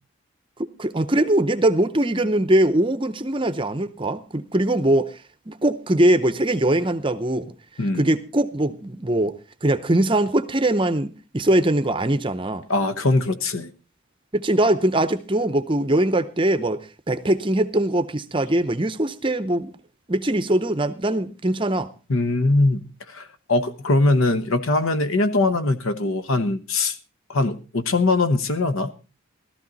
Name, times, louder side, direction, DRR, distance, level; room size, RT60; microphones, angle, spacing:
voice 1, 0.8-5.1 5.5-7.5 8.0-9.3 9.6-12.6 14.3-16.8 17.1-19.7 20.1-21.9, right 1 dB, 25° right, 0.6 m, -21 dB
voice 2, 7.8-8.1 12.7-13.7 22.1-22.8 23.1-27.0 27.3-28.9, left 2 dB, 75° left, 1.1 m, -21 dB
15.0 x 13.0 x 4.0 m
head